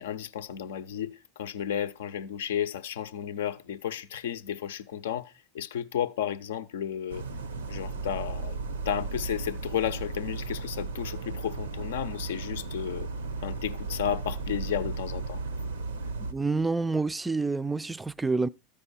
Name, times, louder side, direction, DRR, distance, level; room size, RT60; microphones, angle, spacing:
voice 1, 0.0-7.2 7.7-8.6 8.9-13.1 13.4-15.4, left 9 dB, 70° left, 0.5 m, -33 dB
sound 1, 7.1-16.3, right 3 dB, 85° right, 0.6 m, -35 dB
voice 2, 16.3-18.5, right 3 dB, 10° right, 0.4 m, -28 dB
13.0 x 4.9 x 4.1 m
hypercardioid pair, 80°, 0 cm